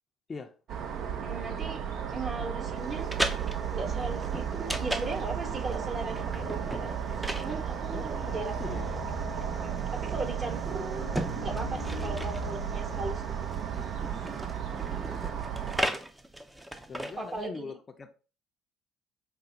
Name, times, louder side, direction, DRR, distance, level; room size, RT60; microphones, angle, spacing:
sound 1, 0.7-15.8, right 8 dB, 60° right, 0.6 m, -34 dB
voice 1, 1.2-1.8 2.1-3.1 3.7-6.9 7.4-8.6 9.6-11.1 11.4-13.5 17.2-17.7, right 3 dB, 35° right, 1.1 m, -37 dB
sound 2, 2.8-17.5, right 1 dB, 10° right, 0.5 m, -38 dB
sound 3, 6.1-7.6 8.0-8.1 8.3-9.9 10.5-13.6, left 5 dB, 80° left, 0.6 m, -42 dB
voice 2, 7.9-8.9 14.5-15.1 16.9-18.1, left 5 dB, 35° left, 0.5 m, -42 dB
5.1 x 2.1 x 2.7 m
hypercardioid pair, 60°, 0 cm